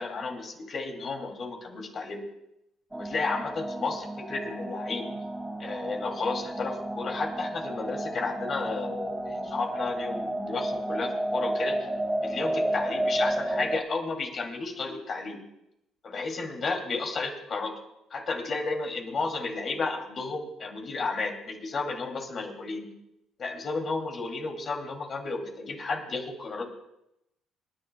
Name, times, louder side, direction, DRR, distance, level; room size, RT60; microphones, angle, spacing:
voice 1, 0.0-2.2 2.9-5.1 5.6-11.8 12.2-15.4 16.0-17.7 18.1-22.9 23.4-26.6, left 3 dB, 50° left, 2 dB, 2.7 m, -32 dB
sound 1, 2.9-13.8, right 1 dB, 15° right, 0.9 m, -32 dB
27.0 x 10.5 x 2.3 m, 0.84 s
supercardioid pair, 70°, 0 cm